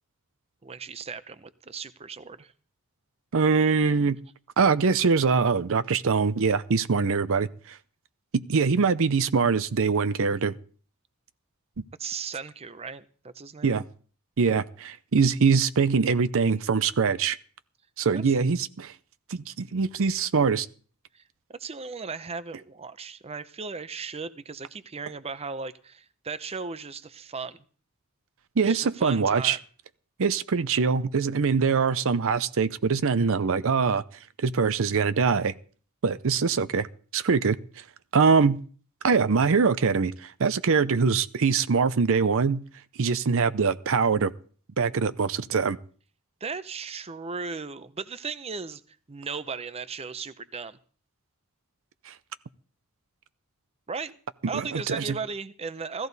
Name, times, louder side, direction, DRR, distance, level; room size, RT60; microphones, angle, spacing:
voice 1, 0.6-2.5 12.0-13.8 18.1-18.4 21.1-21.2 21.5-27.6 28.6-29.6 46.4-48.8 49.1-50.8 53.9-54.2 54.5-56.1, right 5 dB, 25° right, 14 dB, 0.6 m, -36 dB
voice 2, 3.3-4.2 4.6-7.8 8.3-10.5 13.6-13.8 14.4-17.4 18.0-18.9 19.3-20.7 28.6-29.6 30.2-34.0 34.4-35.5 36.0-36.9 37.1-37.8 38.1-38.6 39.0-42.6 43.0-44.3 44.8-45.8 52.1-52.2 54.5-55.2, right 5 dB, 65° right, 15 dB, 0.6 m, -23 dB
16.5 x 14.0 x 4.1 m, 0.42 s
head